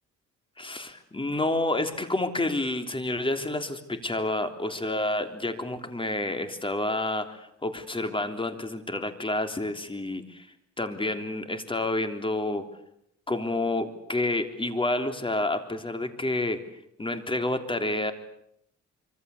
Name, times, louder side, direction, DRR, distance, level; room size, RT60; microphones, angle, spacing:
voice 1, 0.6-12.7 13.3-16.6 17.0-18.1, left 2 dB, 15° left, 7 dB, 3.4 m, -29 dB
25.5 x 25.0 x 8.4 m, 0.77 s
cardioid pair, 90°, 30 cm